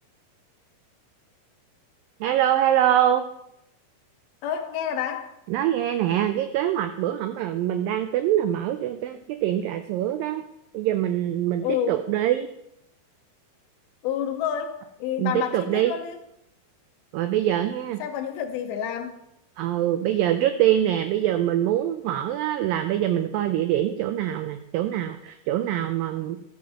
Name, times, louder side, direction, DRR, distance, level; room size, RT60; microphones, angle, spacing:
voice 1, 2.2-3.2 5.5-10.4 10.7-12.5 15.2-15.9 17.1-18.0 19.6-26.4, right 11 dB, 90° right, 8 dB, 2.0 m, -24 dB
voice 2, 4.4-5.3 11.6-12.0 14.0-16.2 18.0-19.2, left 9 dB, 80° left, 6 dB, 2.4 m, -29 dB
13.5 x 9.3 x 2.9 m, 0.79 s
omnidirectional pair, 4.7 m